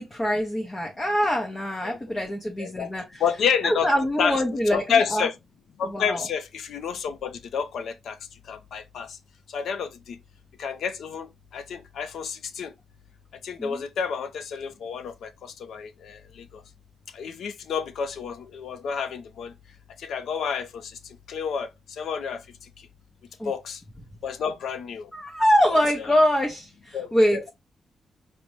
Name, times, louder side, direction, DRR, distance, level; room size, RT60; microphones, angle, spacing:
voice 1, 0.0-3.2 3.6-5.3 5.8-6.3 13.6-13.8 23.4-23.5 25.1-27.4, equal, 15° left, 0.7 m, -24 dB
voice 2, 2.6-2.9 3.2-3.9 4.2-4.4 4.7-5.3 5.8-8.2 8.5-9.2 9.5-10.2 10.6-11.3 11.5-12.7 13.4-16.2 17.1-19.5 20.0-20.9 21.3-21.7 22.0-22.4 23.5-23.8 24.2-25.1 25.7-25.8 26.1-26.2 26.9-27.5, left 7 dB, 75° left, 0.5 m, -29 dB
5.0 x 2.1 x 3.0 m
wide cardioid pair, 160°, 0 cm